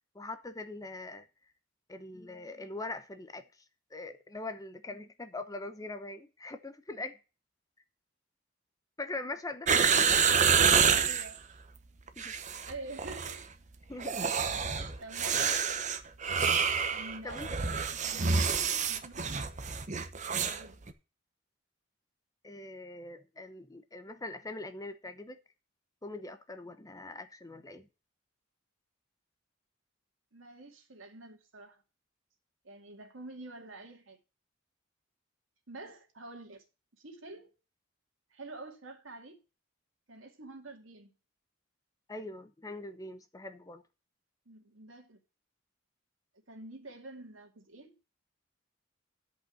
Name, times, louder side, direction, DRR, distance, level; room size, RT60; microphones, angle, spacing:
voice 1, 0.1-1.3 1.9-3.4 3.9-7.2 9.0-10.2 12.2-12.7 13.9-14.3 14.6-15.0 17.2-17.5 20.4-20.6 22.4-25.4 26.0-27.9 42.1-43.8, left 2 dB, 20° left, 0.8 m, -42 dB
sound 1, 9.7-11.3 12.1-12.7 13.0-13.4 14.0-20.6 20.9-21.0, right 6 dB, 40° right, 0.9 m, -28 dB
voice 2, 10.9-11.6 12.6-13.5 14.5-15.6 16.9-18.3 18.9-19.5 20.5-20.8 30.3-31.8 32.6-34.2 35.7-36.6 36.9-37.5 38.3-39.4 40.1-41.1 44.5-45.2 46.5-48.0, right 2 dB, 85° right, 2.4 m, -48 dB
10.5 x 5.5 x 7.0 m
head